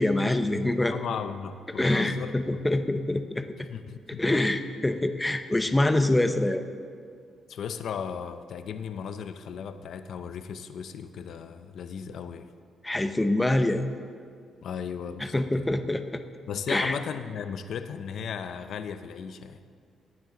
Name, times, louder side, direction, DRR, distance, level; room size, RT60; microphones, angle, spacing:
voice 1, 0.0-1.0 1.8-3.7 4.2-6.6 12.8-13.8 15.2-16.2 16.7-16.9, left 1 dB, 10° left, 9 dB, 0.7 m, -25 dB
voice 2, 0.9-2.6 3.7-4.4 7.5-12.5 14.6-15.6 16.5-19.6, left 7 dB, 65° left, 10 dB, 0.6 m, -36 dB
17.5 x 9.2 x 3.9 m, 2.2 s
cardioid pair, 90°, 0 cm